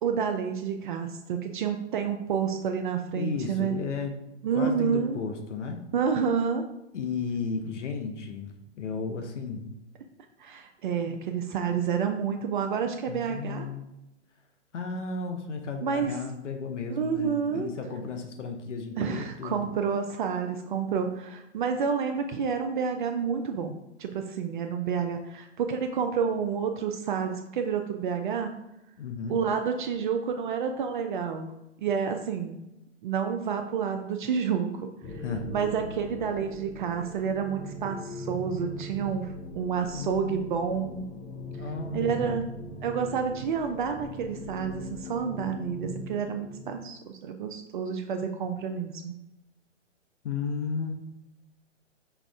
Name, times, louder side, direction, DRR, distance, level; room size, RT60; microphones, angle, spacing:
voice 1, 0.0-3.8 4.4-5.2 5.9-6.6 10.4-13.7 15.8-16.2 16.9-17.7 19.0-28.5 29.3-31.5 31.8-32.6 33.0-35.2 35.5-41.1 41.6-42.5 42.8-49.1, right 6 dB, 45° right, 5 dB, 0.5 m, -29 dB
voice 2, 3.1-4.2 4.5-5.9 6.9-9.7 13.0-13.8 14.7-19.7 29.0-29.4 35.2-35.4 39.9-41.1 41.6-42.5 50.2-50.9, left 5 dB, 75° left, 4 dB, 0.9 m, -34 dB
sound 1, 35.0-47.0, left 1 dB, 10° left, 0.6 m, -40 dB
5.8 x 2.5 x 3.5 m, 0.90 s
hypercardioid pair, 130°, 36 cm